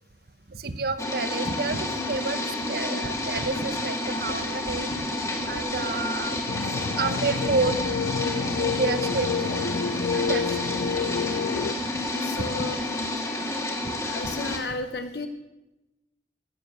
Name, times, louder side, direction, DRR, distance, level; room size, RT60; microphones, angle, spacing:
voice 1, 0.5-2.4 2.7-6.4 7.0-7.9 8.6-9.6 10.1-10.7 13.8-13.9 14.2-14.3, right 4 dB, 55° right, 11 dB, 0.9 m, -30 dB
sound 1, 1.0-14.6, left 2 dB, 20° left, 1.9 m, -30 dB
sound 2, 6.5-11.7, left 6 dB, 85° left, 0.4 m, -29 dB
voice 2, 12.1-12.9 14.1-15.3, left 3 dB, 60° left, 7 dB, 0.9 m, -33 dB
16.5 x 6.9 x 7.7 m, 1.0 s
head